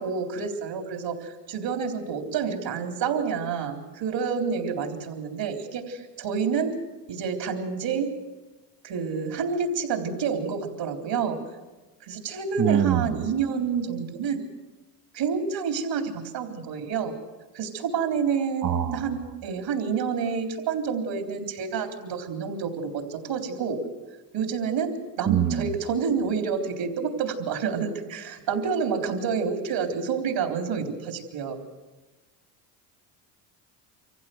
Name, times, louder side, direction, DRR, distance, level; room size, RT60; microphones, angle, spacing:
voice 1, 0.0-6.8 7.1-8.1 8.8-11.4 12.0-14.4 15.1-17.1 17.5-23.8 24.3-31.6, right 6 dB, 60° right, 4 dB, 3.9 m, -28 dB
voice 2, 12.6-13.2 18.6-19.1 25.2-25.7, right 10 dB, 40° right, 12 dB, 1.2 m, -24 dB
24.5 x 15.5 x 7.9 m, 1.2 s
supercardioid pair, 85°, 49 cm